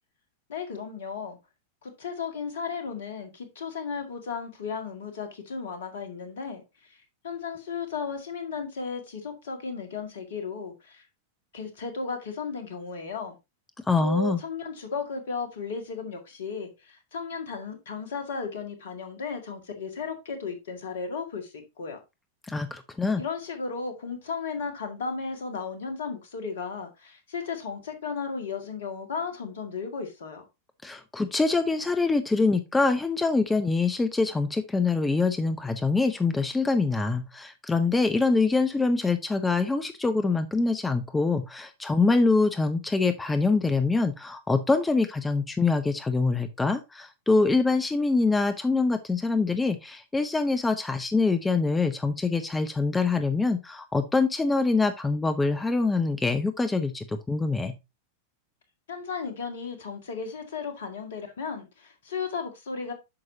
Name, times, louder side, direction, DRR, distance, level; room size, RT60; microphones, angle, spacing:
voice 1, 0.5-1.4 1.8-6.6 7.2-11.0 11.5-13.4 14.0-22.0 23.2-30.4 58.9-62.9, left 5 dB, 60° left, 1.9 m, -35 dB
voice 2, 13.9-14.4 22.4-23.2 30.8-57.7, left 3 dB, 10° left, 0.6 m, -24 dB
8.6 x 6.3 x 2.7 m
figure-of-eight pair, 90°, 0 cm